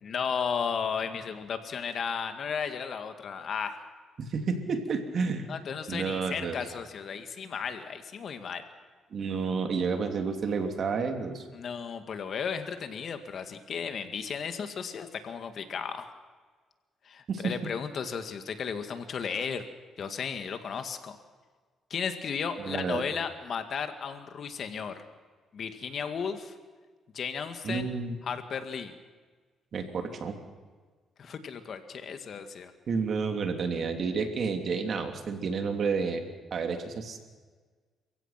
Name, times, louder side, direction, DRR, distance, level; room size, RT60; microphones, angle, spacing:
voice 1, 0.0-3.8 5.5-8.6 11.5-16.1 17.0-19.6 20.0-21.2 21.9-25.0 25.5-26.5 27.1-27.9 28.2-28.9 31.2-32.7, left 6 dB, 55° left, 8 dB, 2.1 m, -34 dB
voice 2, 4.2-5.5 5.9-6.6 9.1-11.4 17.3-17.5 22.6-23.0 27.6-28.1 29.7-30.3 32.9-36.2 36.5-37.2, right 5 dB, 55° right, 5 dB, 3.1 m, -30 dB
29.5 x 16.0 x 5.9 m, 1.4 s
cardioid pair, 90°, 0 cm